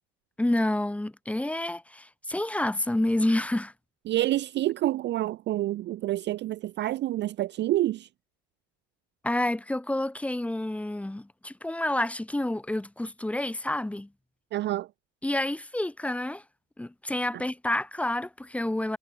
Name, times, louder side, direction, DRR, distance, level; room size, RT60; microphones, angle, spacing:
voice 1, 0.4-3.7 9.2-14.1 15.2-16.4 16.8-19.0, left 1 dB, 5° left, 2.1 m, -29 dB
voice 2, 4.1-8.1 14.5-14.9, right 15 dB, 35° right, 0.5 m, -28 dB
cardioid pair, 155°, 31 cm